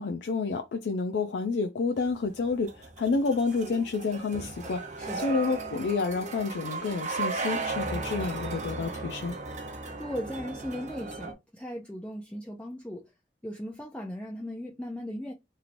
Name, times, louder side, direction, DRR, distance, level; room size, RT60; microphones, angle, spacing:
voice 1, 0.0-9.4, left 4 dB, 75° left, 0.4 m, -29 dB
sound 1, 2.0-11.3, right 3 dB, 45° right, 0.6 m, -36 dB
voice 2, 5.0-5.3 10.0-13.1 13.4-15.3, equal, 5° left, 0.4 m, -37 dB
3.0 x 2.7 x 2.5 m
head